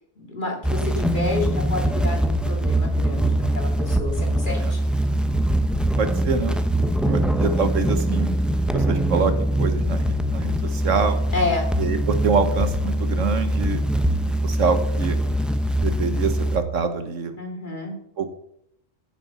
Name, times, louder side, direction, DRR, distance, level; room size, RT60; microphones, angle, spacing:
voice 1, 0.2-4.8 6.8-7.2 11.3-11.7 17.4-17.9, left 2 dB, 40° left, 1 dB, 2.8 m, -29 dB
sound 1, 0.6-16.6, right 1 dB, ahead, 0.6 m, -22 dB
voice 2, 6.0-6.5 7.1-8.4 8.7-9.3 9.6-10.0 10.3-11.2 11.8-13.8 14.1-14.2 14.4-15.2 15.8-17.4 18.2-18.3, right 5 dB, 70° right, 9 dB, 1.5 m, -25 dB
15.0 x 7.0 x 5.7 m, 0.75 s
omnidirectional pair, 1.3 m